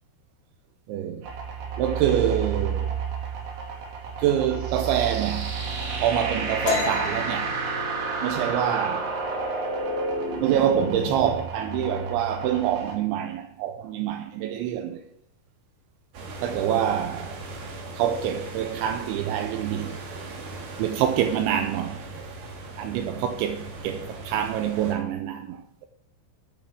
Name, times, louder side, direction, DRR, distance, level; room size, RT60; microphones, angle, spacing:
voice 1, 0.9-1.3 1.8-2.9 4.2-5.5 6.0-7.6 8.2-9.4 10.4-15.0 16.4-17.4 18.0-20.0 20.8-22.3 22.8-25.9, right 10 dB, 80° right, 2.7 m, -26 dB
sound 1, 1.2-13.0, right 4 dB, 65° right, 4.5 m, -30 dB
sound 2, 6.6-10.1 10.4-10.7 11.1-11.6 11.9-12.7, left 6 dB, 75° left, 4.4 m, -32 dB
sound 3, 16.1-24.9, right 2 dB, 50° right, 3.1 m, -39 dB
12.5 x 11.5 x 3.5 m
omnidirectional pair, 5.9 m